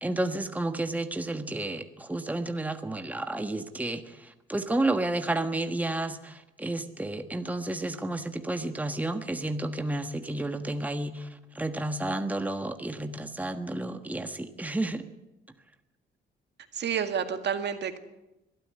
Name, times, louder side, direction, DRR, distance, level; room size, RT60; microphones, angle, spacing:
voice 1, 0.0-11.3 11.5-15.0, right 2 dB, 10° right, 7 dB, 1.4 m, -31 dB
voice 2, 16.7-18.0, right 7 dB, 60° right, 8 dB, 2.0 m, -29 dB
22.5 x 12.5 x 9.6 m, 0.96 s
cardioid pair, 90°, 20 cm